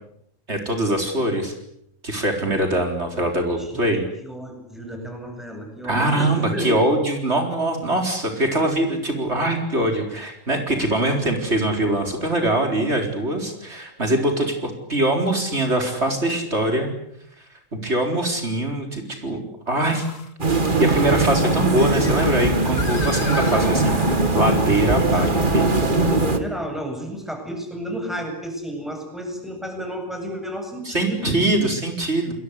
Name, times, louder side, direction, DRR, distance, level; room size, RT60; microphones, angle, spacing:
voice 1, 0.5-1.5 2.0-4.0 5.8-16.9 17.8-19.4 19.7-20.1 20.8-24.0 24.3-25.3 25.5-25.6 30.9-32.3, right 1 dB, 60° right, 3 dB, 4.6 m, -22 dB
voice 2, 4.2-6.7 23.4-23.9 25.0-25.4 25.9-31.4, equal, ahead, 4 dB, 7.9 m, -32 dB
sound 1, 9.9-10.1 10.7-10.8 12.9-13.0 16.5-16.6 19.8-20.3 21.3-24.2, left 4 dB, 85° left, 2.5 m, -36 dB
sound 2, 20.4-26.4, right 2 dB, 40° right, 2.5 m, -20 dB
29.5 x 22.0 x 8.3 m, 0.75 s
omnidirectional pair, 1.3 m